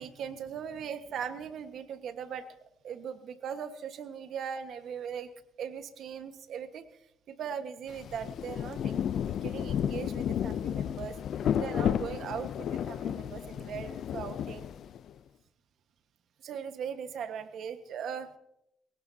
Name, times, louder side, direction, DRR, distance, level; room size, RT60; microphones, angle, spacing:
voice 1, 0.0-2.5 2.8-5.3 5.6-6.9 7.3-14.7 16.4-18.3, right 7 dB, 70° right, 9 dB, 1.4 m, -39 dB
Rain, 7.9-15.1, left 9 dB, 70° left, 0.5 m, -32 dB
21.5 x 18.0 x 2.8 m, 0.78 s
cardioid pair, 90°, 0 cm